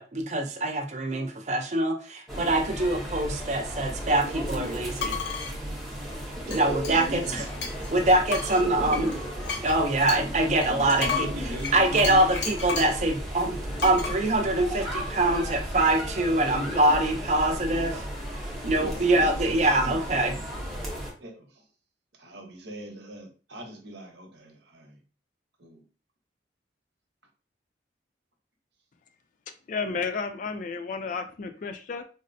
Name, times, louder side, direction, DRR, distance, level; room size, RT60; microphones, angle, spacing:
voice 1, 0.0-5.2 6.5-7.4 7.9-9.1 9.6-11.3 11.7-18.0 18.7-20.3, right 2 dB, 40° right, 3 dB, 0.5 m, -24 dB
sound 1, 2.3-21.1, equal, ahead, 0.7 m, -35 dB
sound 2, 5.0-5.5 6.5-7.9 8.3-13.0 13.8-14.2, left 5 dB, 85° left, 0.8 m, -33 dB
voice 2, 6.3-7.4 8.5-9.2 10.0-12.3 18.6-20.0 21.2-21.6 22.2-25.0 25.6-25.8, equal, 80° right, 2 dB, 0.9 m, -39 dB
voice 3, 29.7-32.0, left 4 dB, 45° left, 9 dB, 0.3 m, -32 dB
4.0 x 2.0 x 2.6 m, 0.37 s
head